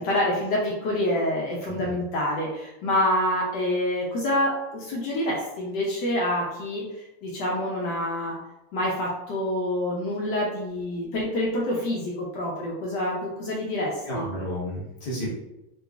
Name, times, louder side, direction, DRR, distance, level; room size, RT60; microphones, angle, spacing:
voice 1, 0.0-8.4 8.7-14.3, left 1 dB, 70° left, -3 dB, 1.1 m, -27 dB
voice 2, 1.7-2.0 14.1-15.3, equal, 25° left, -9 dB, 0.8 m, -32 dB
3.8 x 2.3 x 2.3 m, 0.92 s
omnidirectional pair, 2.1 m